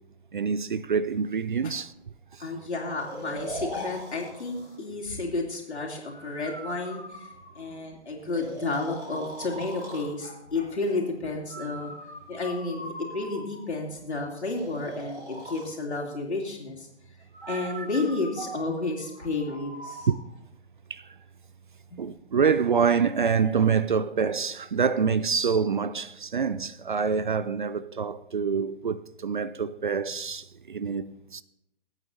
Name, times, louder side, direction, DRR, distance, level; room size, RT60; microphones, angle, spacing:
voice 1, 0.3-1.9 4.9-5.0 17.4-17.6 18.5-18.6 20.1-20.2 20.9-21.0 22.0-31.4, right 6 dB, 45° right, 0.4 m, -26 dB
voice 2, 2.4-12.0 12.3-16.9 17.5-20.1 21.9-22.0, left 3 dB, 70° left, 3.1 m, -31 dB
Breathing, 3.0-4.8 6.1-7.8 8.3-10.1 11.5-13.8 14.5-15.7 17.3-20.2, right 1 dB, 70° right, 5.7 m, -41 dB
22.5 x 8.9 x 2.8 m
figure-of-eight pair, 135°, 35 cm